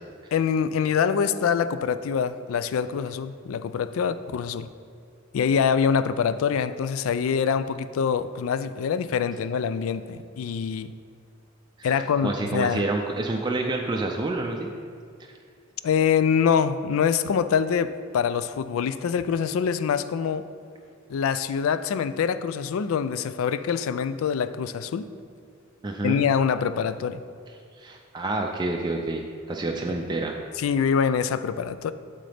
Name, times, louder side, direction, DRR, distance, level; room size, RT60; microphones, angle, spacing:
voice 1, 0.3-4.7 5.3-10.9 11.8-12.8 15.8-20.5 21.1-25.1 26.0-27.2 29.9-30.0 30.6-31.9, left 7 dB, 85° left, 13 dB, 0.3 m, -25 dB
voice 2, 12.2-14.7 15.2-15.3 25.8-26.3 27.8-30.4, right 2 dB, 20° right, 1 dB, 0.4 m, -28 dB
11.5 x 3.8 x 3.4 m, 2.3 s
head